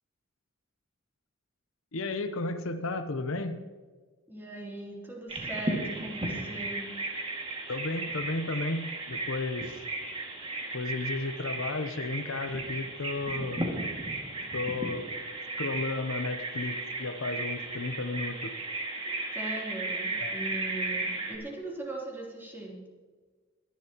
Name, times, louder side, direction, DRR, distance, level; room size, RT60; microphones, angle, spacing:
voice 1, 1.9-3.6 7.7-9.8 10.7-13.6 14.5-15.1 15.6-18.5 20.2-20.3, left 3 dB, 65° left, 8 dB, 0.8 m, -33 dB
voice 2, 4.3-6.9 19.3-22.8, right 1 dB, 10° right, -3 dB, 3.2 m, -39 dB
Bird vocalization bird call bird song, 5.3-21.4, right 2 dB, 25° right, 2.1 m, -35 dB
23.0 x 11.5 x 3.0 m, 1.4 s
head